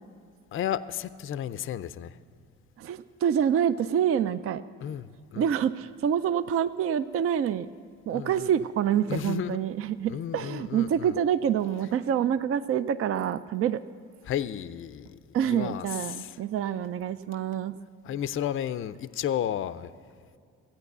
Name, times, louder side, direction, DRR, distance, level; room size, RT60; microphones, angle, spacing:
voice 1, 0.5-2.2 4.8-5.5 8.1-8.5 9.1-9.6 10.1-11.2 14.2-16.4 18.0-19.9, left 10 dB, 45° left, 0.4 m, -33 dB
voice 2, 2.8-4.6 5.4-7.7 8.1-13.8 15.3-17.8, right 9 dB, 50° right, 0.4 m, -27 dB
14.5 x 9.0 x 6.7 m
cardioid pair, 90°, 30 cm